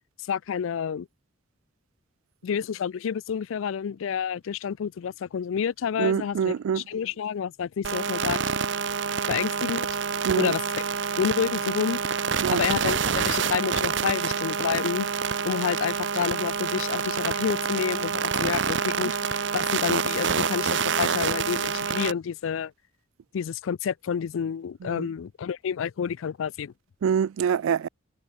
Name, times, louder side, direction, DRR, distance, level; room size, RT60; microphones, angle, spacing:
voice 1, 0.3-1.1 2.4-8.4 9.3-9.9 10.4-10.8 11.2-12.1 12.5-15.1 15.4-22.7 23.3-26.7, left 7 dB, 75° left, 0.4 m, -29 dB
voice 2, 6.0-6.8 10.2-10.5 12.4-12.6 24.9-25.1 27.0-27.9, right 7 dB, 80° right, 0.3 m, -25 dB
sound 1, 7.8-22.1, right 6 dB, 60° right, 0.8 m, -27 dB
head